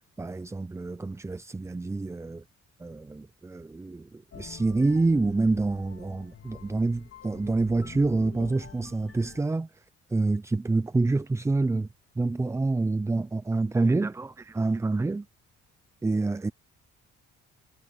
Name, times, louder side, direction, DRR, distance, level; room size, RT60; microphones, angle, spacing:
voice 1, 0.2-2.4 2.8-9.7 10.1-11.9 12.2-15.3 16.0-16.5, right 3 dB, 10° right, 0.4 m, -27 dB
sound 1, 4.3-9.4, left 7 dB, 50° left, 2.7 m, -47 dB
cardioid pair, 90°, 30 cm